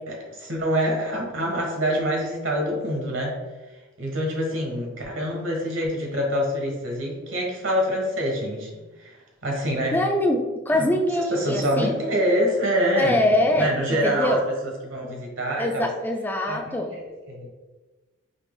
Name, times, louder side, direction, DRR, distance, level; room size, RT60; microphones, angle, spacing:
voice 1, 0.1-3.3 4.0-10.0 10.7-14.4 14.8-15.9 16.5-17.5, equal, 65° right, 0 dB, 1.1 m, -26 dB
voice 2, 9.9-12.0 12.9-13.7 14.0-14.4 15.0-15.1 15.6-17.0, left 1 dB, 10° left, 3 dB, 0.3 m, -23 dB
4.2 x 2.9 x 3.6 m, 1.2 s
head